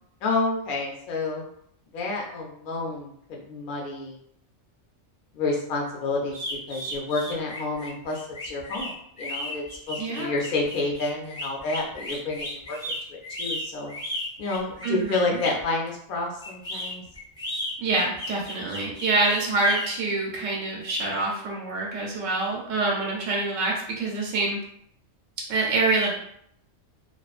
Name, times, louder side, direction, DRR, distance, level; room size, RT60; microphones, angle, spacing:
voice 1, 0.2-1.4 1.9-4.2 5.3-6.4 6.7-13.9 14.4-17.0, left 3 dB, 55° left, -1 dB, 0.6 m, -29 dB
sound 1, 6.3-15.6 16.4-19.9, left 1 dB, 5° right, 0.5 m, -35 dB
voice 2, 10.0-10.3 14.8-15.4 17.8-24.6 25.5-26.1, right 3 dB, 85° right, -2 dB, 1.0 m, -26 dB
2.3 x 2.2 x 2.4 m, 0.70 s
omnidirectional pair, 1.3 m